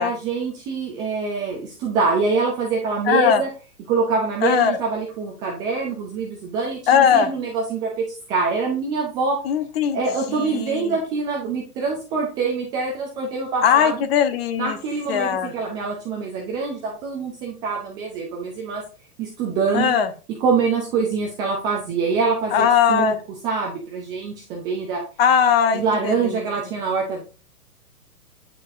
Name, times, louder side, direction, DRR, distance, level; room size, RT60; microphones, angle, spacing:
voice 1, 0.0-3.5 3.9-9.4 9.9-14.0 14.6-18.8 19.2-20.0 20.4-23.2 23.4-25.0 25.7-27.2, right 4 dB, 10° right, -1 dB, 0.4 m, -25 dB
voice 2, 3.1-3.4 4.4-4.8 6.9-7.3 9.4-10.0 10.3-10.9 13.6-14.8 15.1-15.5 19.7-20.1 22.5-23.2 25.2-26.1, left 8 dB, 40° left, 10 dB, 1.1 m, -19 dB
9.2 x 6.2 x 2.6 m, 0.35 s
figure-of-eight pair, 115°, 47 cm